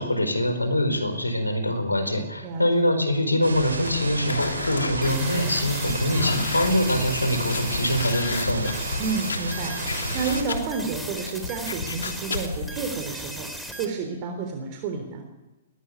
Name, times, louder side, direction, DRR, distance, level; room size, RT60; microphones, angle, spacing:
voice 1, 0.0-8.8, left 1 dB, 90° left, 9 dB, 4.4 m, -24 dB
sound 1, 3.4-10.4, right 2 dB, 75° right, 6.8 m, -32 dB
sound 2, 3.6-12.7, left 4 dB, 70° left, 3.0 m, -34 dB
sound 3, 5.0-13.9, equal, ahead, 3.7 m, -37 dB
voice 2, 9.0-15.2, right 5 dB, 35° right, 4 dB, 3.6 m, -30 dB
21.0 x 18.0 x 9.5 m, 1.1 s
figure-of-eight pair, 115°, 0 cm